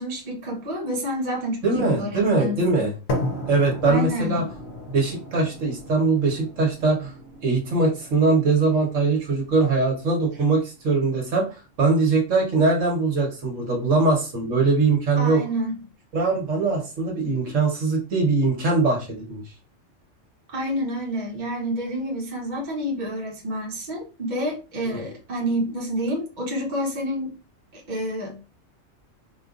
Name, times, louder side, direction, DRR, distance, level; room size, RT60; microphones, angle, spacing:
voice 1, 0.0-2.9 3.8-4.4 15.2-15.8 20.5-27.3 27.7-28.4, equal, 40° right, -2 dB, 1.1 m, -29 dB
voice 2, 1.6-2.9 3.5-4.4 4.9-7.1 7.4-11.5 11.8-15.4 16.1-19.4 24.8-25.0, right 3 dB, 75° right, -1 dB, 1.5 m, -21 dB
sound 1, 3.1-11.1, left 1 dB, 50° left, 0.7 m, -35 dB
4.3 x 2.5 x 2.4 m, 0.33 s
omnidirectional pair, 1.3 m